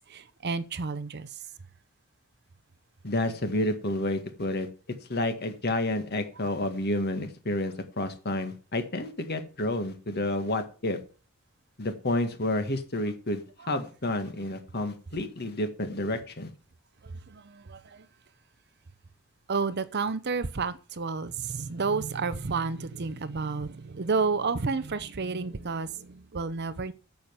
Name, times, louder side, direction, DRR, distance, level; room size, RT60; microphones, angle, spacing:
voice 1, 0.0-1.5 17.0-18.1 19.5-26.9, right 4 dB, 50° right, 0.7 m, -31 dB
voice 2, 3.0-4.7 5.1-11.0 11.8-16.5, left 1 dB, 45° left, 1.8 m, -30 dB
8.9 x 7.0 x 8.1 m
head